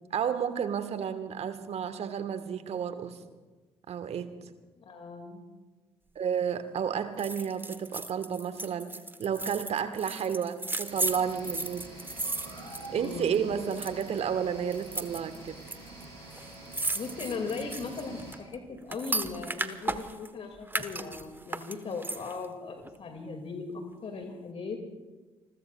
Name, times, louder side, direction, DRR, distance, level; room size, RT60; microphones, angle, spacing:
voice 1, 0.1-3.2 3.9-4.3 6.1-8.9 9.2-11.8 12.9-15.6, right 8 dB, 50° right, 10 dB, 1.4 m, -31 dB
voice 2, 4.8-5.4 12.9-13.4 17.0-24.8, left 4 dB, 45° left, 4 dB, 2.3 m, -38 dB
sound 1, 7.2-13.4 13.6-14.2 14.7-15.8 16.0-16.1 16.3-20.3 20.7-22.5 22.8-22.9, right 2 dB, 15° right, 1.2 m, -35 dB
sound 2, 10.8-18.3, right 2 dB, 90° right, 6.3 m, -46 dB
28.5 x 21.0 x 2.4 m, 1.2 s
figure-of-eight pair, 45°, 14 cm